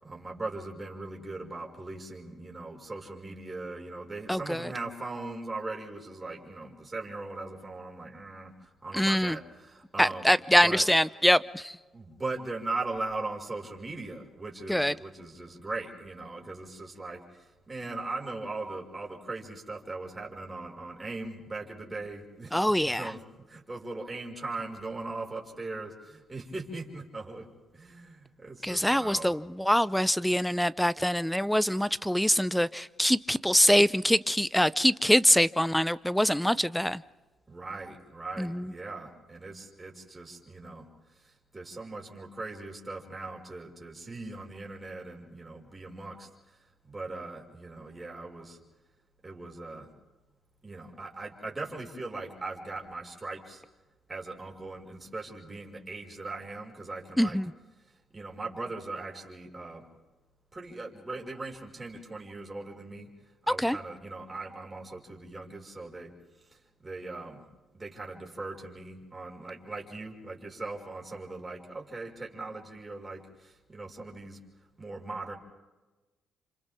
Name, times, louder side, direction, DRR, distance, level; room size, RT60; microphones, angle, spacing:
voice 1, 0.0-10.3 10.6-10.9 11.9-17.2 17.7-22.5 22.8-23.2 23.5-27.5 27.7-29.4 37.5-40.9 41.2-46.3 46.8-48.6 49.2-49.9 50.6-53.6 54.1-57.4 58.1-59.8 60.5-63.1 63.5-66.1 66.8-67.4 67.7-74.4 74.8-75.4, right 3 dB, 20° right, 0 dB, 5.3 m, -39 dB
voice 2, 4.3-4.7 8.9-9.4 10.0-11.8 14.7-14.9 22.5-23.1 28.6-37.0 38.4-38.7 57.2-57.5 63.6-63.8, equal, 5° left, 17 dB, 0.7 m, -24 dB
29.5 x 26.5 x 3.7 m, 1.2 s
cardioid pair, 90°, 0 cm